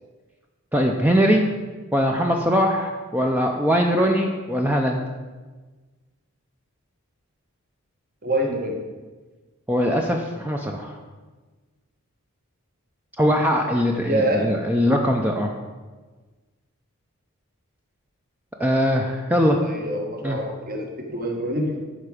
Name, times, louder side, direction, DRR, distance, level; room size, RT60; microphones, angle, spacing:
voice 1, 0.7-1.5 1.9-5.0 9.7-11.0 13.2-15.5 18.6-19.6 20.2-20.4, equal, 10° right, 1 dB, 0.5 m, -21 dB
voice 2, 8.2-8.8 14.0-14.5 19.4-21.8, right 1 dB, 40° right, 2 dB, 1.3 m, -26 dB
11.0 x 4.9 x 4.9 m, 1.3 s
head